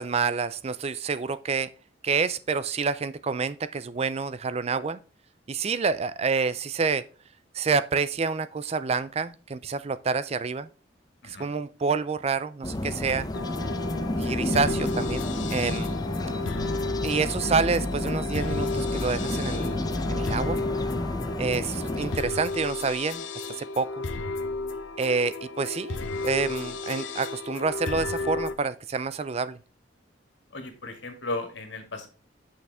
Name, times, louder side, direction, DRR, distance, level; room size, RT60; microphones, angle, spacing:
voice 1, 0.0-1.7 2.0-5.0 5.5-7.0 7.5-10.7 11.2-13.3 14.2-15.9 17.0-19.8 20.1-20.6 21.4-23.2 23.6-24.0 25.0-26.0 26.2-29.6, right 4 dB, 35° right, 0.4 m, -28 dB
sound 1, 12.6-22.2, left 1 dB, 20° left, 0.7 m, -30 dB
sound 2, 13.3-28.5, left 3 dB, 80° left, 0.8 m, -33 dB
voice 2, 30.5-32.1, left 2 dB, 65° left, 2.1 m, -35 dB
8.2 x 6.5 x 3.4 m
head